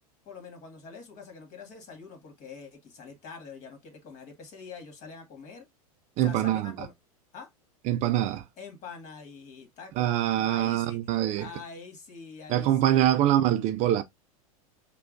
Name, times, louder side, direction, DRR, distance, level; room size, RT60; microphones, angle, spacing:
voice 1, 0.2-5.7 6.2-6.9 7.3-7.5 8.6-11.0 11.4-13.2, left 5 dB, 40° left, 1.8 m, -45 dB
voice 2, 6.2-6.9 7.9-8.4 10.0-11.5 12.5-14.0, right 12 dB, 40° right, 0.4 m, -24 dB
6.4 x 2.3 x 2.4 m
hypercardioid pair, 95°, 19 cm